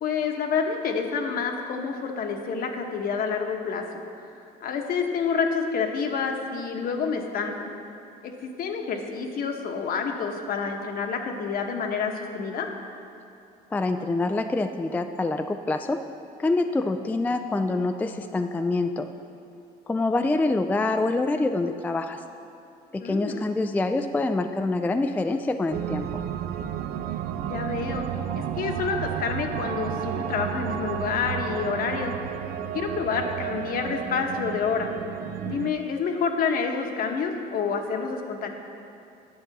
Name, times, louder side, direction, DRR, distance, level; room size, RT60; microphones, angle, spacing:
voice 1, 0.0-4.0 4.6-7.7 8.2-12.7 23.0-23.5 27.4-28.1 28.3-32.1 32.7-34.9 35.4-38.5, left 5 dB, 60° left, 3 dB, 1.1 m, -28 dB
voice 2, 13.7-16.0 16.4-19.1 19.9-22.2 22.9-26.2, left 2 dB, 10° left, 7 dB, 0.3 m, -26 dB
sound 1, 25.7-35.7, right 10 dB, 70° right, 0.5 m, -32 dB
9.6 x 6.7 x 5.9 m, 2.6 s
cardioid pair, 110°, 17 cm